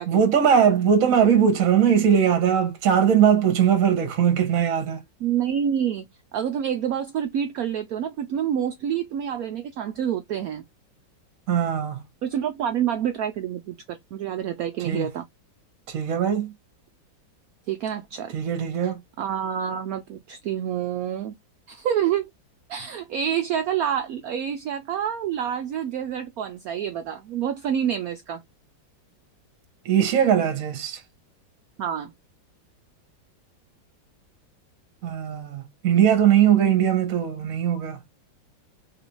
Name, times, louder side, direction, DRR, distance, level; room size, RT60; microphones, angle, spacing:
voice 1, 0.0-5.0 11.5-12.0 14.8-15.1 15.9-16.5 18.3-19.0 29.8-31.0 35.0-38.0, right 8 dB, 55° right, 1.1 m, -20 dB
voice 2, 5.2-6.0 6.3-10.6 12.2-15.2 17.7-18.3 18.8-18.9 19.2-21.3 21.7-22.3 22.7-28.4 31.8-32.1, right 9 dB, 90° right, 0.7 m, -27 dB
3.5 x 2.5 x 2.8 m
omnidirectional pair, 2.1 m